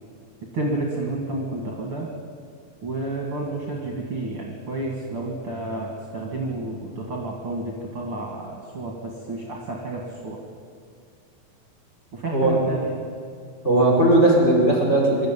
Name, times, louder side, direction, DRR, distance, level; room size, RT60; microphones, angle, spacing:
voice 1, 0.5-2.1 2.8-10.4 12.1-13.0, right 2 dB, 45° right, -1 dB, 2.6 m, -30 dB
voice 2, 12.3-12.7 13.6-15.3, right 1 dB, 20° left, -3 dB, 5.4 m, -18 dB
25.5 x 13.0 x 9.0 m, 2.2 s
omnidirectional pair, 4.1 m